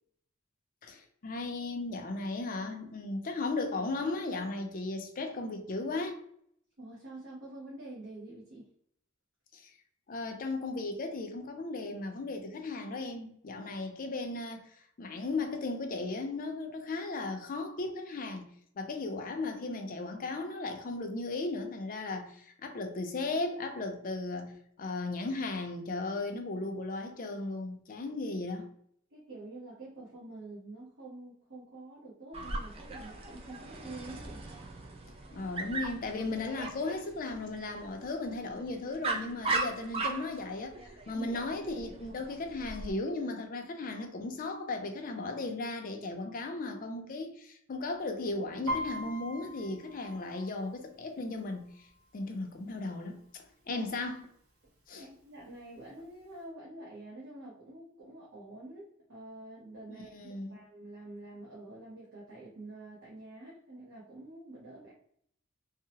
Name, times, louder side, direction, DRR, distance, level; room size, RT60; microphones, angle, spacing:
voice 1, 0.8-6.2 9.5-9.7 10.1-18.5 18.8-24.5 24.8-28.7 35.3-51.9 52.1-54.2 54.9-55.1 59.9-60.6, left 2 dB, 40° left, 0.4 m, -36 dB
voice 2, 6.8-8.7 29.1-34.4 41.1-41.3 53.7-53.9 54.9-64.9, right 2 dB, 55° right, 0.7 m, -47 dB
Dog, 32.3-42.9, right 3 dB, 25° right, 0.4 m, -39 dB
Piano, 48.7-52.3 52.7-53.1 53.4-54.1 54.6-54.7 55.0-56.0 56.4-56.5, equal, 90° right, 0.9 m, -40 dB
2.7 x 2.0 x 2.8 m
head